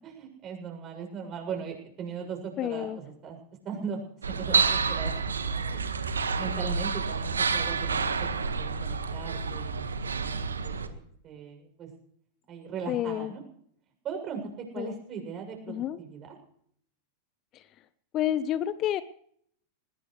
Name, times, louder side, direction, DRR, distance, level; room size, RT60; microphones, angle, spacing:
voice 1, 0.0-3.4 3.6-4.0 4.3-5.8 6.4-9.9 10.2-11.9 12.5-13.4 14.0-14.4 14.7-16.3, right 6 dB, 30° right, 3 dB, 7.2 m, -39 dB
voice 2, 2.6-3.0 12.9-13.3 14.8-14.9 15.7-16.0 18.1-19.0, left 12 dB, 35° left, 16 dB, 0.8 m, -29 dB
sound 1, 4.2-10.9, right 5 dB, 70° right, 1.6 m, -29 dB
21.5 x 20.5 x 3.2 m, 0.65 s
figure-of-eight pair, 90°, 0 cm